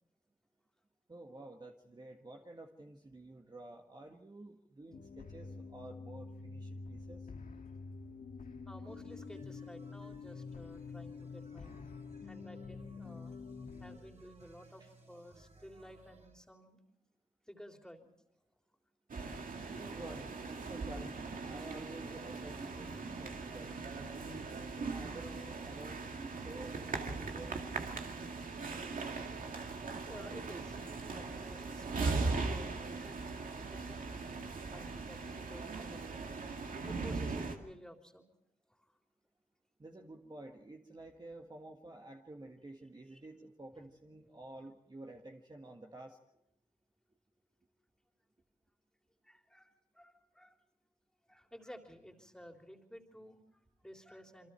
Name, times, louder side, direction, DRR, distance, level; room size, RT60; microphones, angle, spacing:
voice 1, 1.1-7.3 14.8-14.9 19.7-23.7 24.5-27.5 39.8-46.2, right 2 dB, 30° right, 1 dB, 1.8 m, -51 dB
sound 1, 4.9-14.0, left 4 dB, 70° left, 1.8 m, -47 dB
voice 2, 8.7-11.7 12.2-13.4 13.8-16.8 17.5-18.1 30.1-30.8 31.0-33.2 33.7-34.0 34.7-36.4 36.9-38.3 38.7-38.9 43.1-43.2 43.7-43.8 49.2-50.6 51.3-54.5, equal, 5° left, 3 dB, 3.5 m, -53 dB
sound 2, 8.8-16.4, right 2 dB, 50° right, 4.3 m, -62 dB
sound 3, 19.1-37.5, right 3 dB, 70° right, 2.3 m, -40 dB
28.0 x 23.5 x 4.6 m, 0.79 s
cardioid pair, 70°, 15 cm